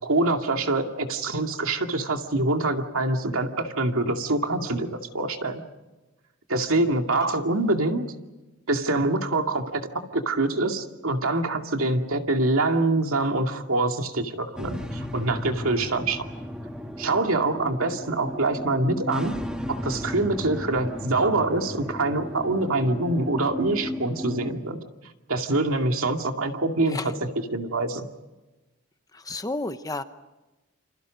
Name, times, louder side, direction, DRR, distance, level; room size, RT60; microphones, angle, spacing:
voice 1, 0.0-5.6 6.5-8.0 8.7-9.8 10.1-16.2 17.0-19.3 19.7-24.8 25.3-27.0 27.5-28.1, right 2 dB, 65° right, 4 dB, 2.4 m, -25 dB
sound 1, 14.6-24.5, equal, 5° right, 1.6 m, -34 dB
voice 2, 29.1-30.0, left 2 dB, 15° left, 10 dB, 0.9 m, -32 dB
29.0 x 27.5 x 5.3 m, 1.1 s
head